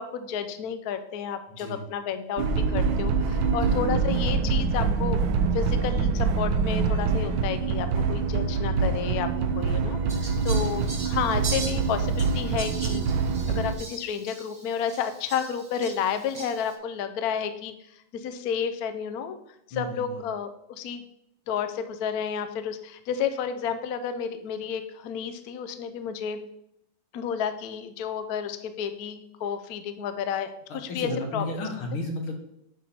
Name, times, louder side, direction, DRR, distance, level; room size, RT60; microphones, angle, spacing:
voice 1, 0.0-5.2 5.5-13.0 13.5-17.7 18.1-19.4 19.7-21.0 21.5-26.4 27.1-31.4, left 7 dB, 70° left, 9 dB, 0.9 m, -31 dB
voice 2, 1.5-1.8 3.6-3.8 10.8-10.9 19.7-20.2 30.9-32.3, left 1 dB, 85° left, 2 dB, 2.2 m, -33 dB
sound 1, 2.4-13.7, right 5 dB, 85° right, 1.5 m, -25 dB
Fowl, 10.1-16.7, right 3 dB, 30° right, 1.2 m, -40 dB
10.0 x 3.5 x 4.3 m, 0.78 s
omnidirectional pair, 2.2 m